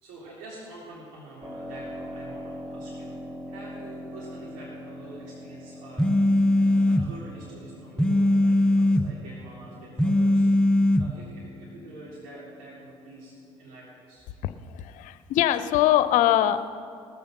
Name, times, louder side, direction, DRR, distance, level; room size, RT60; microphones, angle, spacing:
voice 1, 0.0-10.7 11.0-14.3, right 2 dB, 75° right, -7 dB, 3.6 m, -46 dB
Keyboard (musical), 1.4-13.9, equal, 15° right, 2.3 m, -43 dB
sound 1, 6.0-7.1 8.0-9.1 10.0-11.1, left 1 dB, 5° left, 0.8 m, -20 dB
voice 2, 14.4-16.7, left 12 dB, 70° left, 12 dB, 0.6 m, -23 dB
18.5 x 6.9 x 6.7 m, 2.3 s
hypercardioid pair, 65°, 13 cm